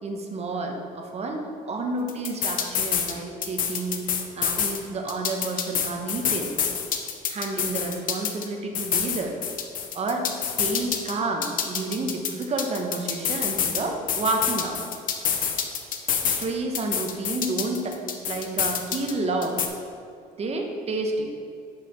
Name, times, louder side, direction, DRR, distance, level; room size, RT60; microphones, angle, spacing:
voice 1, 0.0-1.4 1.7-4.1 4.4-6.6 7.3-9.4 9.9-14.9 16.2-18.0 18.3-19.6 20.4-21.3, right 2 dB, 40° right, 2 dB, 1.0 m, -30 dB
sound 1, 2.1-3.1 3.4-4.8 5.1-8.5 8.7-11.1 11.4-13.8 14.1-16.5 16.7-19.1 19.4-19.7, left 8 dB, 55° left, 0.7 m, -27 dB
5.6 x 4.9 x 5.6 m, 2.5 s
cardioid pair, 110°, 17 cm